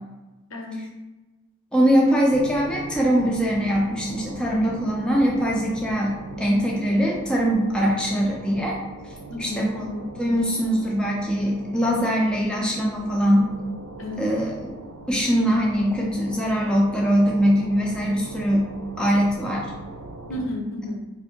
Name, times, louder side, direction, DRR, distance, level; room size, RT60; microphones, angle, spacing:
voice 1, 0.5-0.9 8.1-8.2 9.3-10.0 14.0-14.3 20.3-21.0, left 1 dB, 70° left, 1 dB, 0.6 m, -32 dB
voice 2, 1.7-8.8 9.4-9.8 10.2-13.5 14.2-14.8 15.1-18.7 19.0-19.7, equal, 5° left, -3 dB, 0.4 m, -22 dB
sound 1, 2.3-20.4, right 2 dB, 85° right, 0.5 m, -40 dB
2.6 x 2.6 x 3.6 m, 1.1 s
head